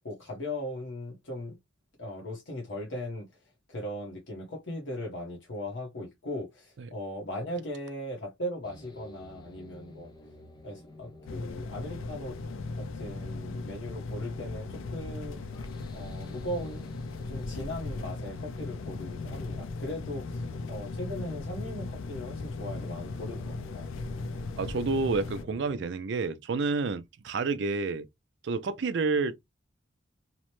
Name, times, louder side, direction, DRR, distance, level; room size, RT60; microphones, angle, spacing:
voice 1, 0.0-1.6 2.0-3.3 3.7-10.1 10.6-12.4 12.8-15.4 15.9-16.9 17.3-20.4 20.7-23.9, left 1 dB, 70° left, 0.9 m, -38 dB
sound 1, 8.6-25.8, left 2 dB, 20° left, 0.5 m, -49 dB
sound 2, 11.3-25.4, left 3 dB, 90° left, 0.4 m, -38 dB
voice 2, 24.6-28.1 28.4-29.4, right 4 dB, 60° right, 0.4 m, -29 dB
2.9 x 2.1 x 2.9 m
head